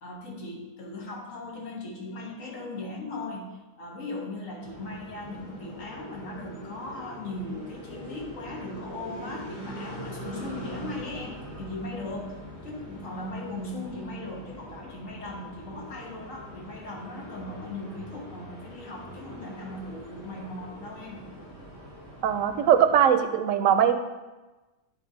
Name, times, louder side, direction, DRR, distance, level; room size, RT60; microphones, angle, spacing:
voice 1, 0.0-21.2 21.9-22.0, left 2 dB, 75° left, -1 dB, 1.6 m, -38 dB
sound 1, 4.6-23.0, right 1 dB, 55° left, 2.5 m, -43 dB
voice 2, 22.2-24.0, right 8 dB, 80° right, 9 dB, 1.0 m, -21 dB
9.1 x 4.1 x 3.9 m, 1.1 s
omnidirectional pair, 1.4 m